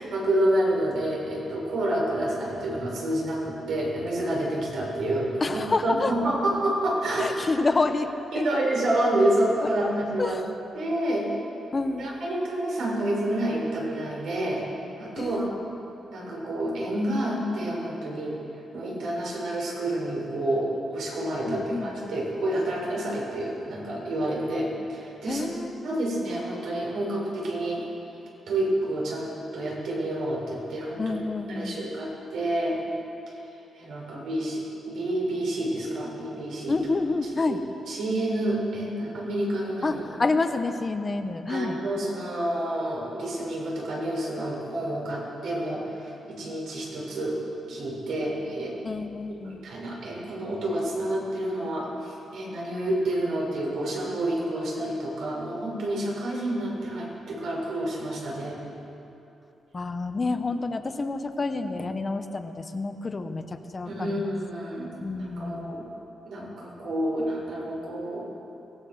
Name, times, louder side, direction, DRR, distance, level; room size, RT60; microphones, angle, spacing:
voice 1, 0.0-7.4 8.3-10.4 10.7-11.3 12.0-14.6 15.0-15.5 16.1-18.4 18.7-25.5 25.8-27.8 28.5-31.2 31.5-32.8 33.3-33.4 33.8-36.8 37.4-37.6 37.9-40.0 41.5-47.4 47.7-48.8 49.4-58.6 63.9-65.9 66.2-68.3, right 1 dB, 75° right, -3 dB, 6.3 m, -28 dB
voice 2, 5.4-6.1 7.2-8.2 9.6-9.9 10.2-10.5 11.7-12.1 15.2-15.5 21.5-22.1 25.3-25.9 31.0-31.8 36.7-37.6 39.8-41.8 48.8-49.6 59.7-64.3 65.0-65.7, left 3 dB, 25° left, 7 dB, 0.9 m, -28 dB
23.0 x 18.5 x 6.4 m, 2.9 s
wide cardioid pair, 170°, 0 cm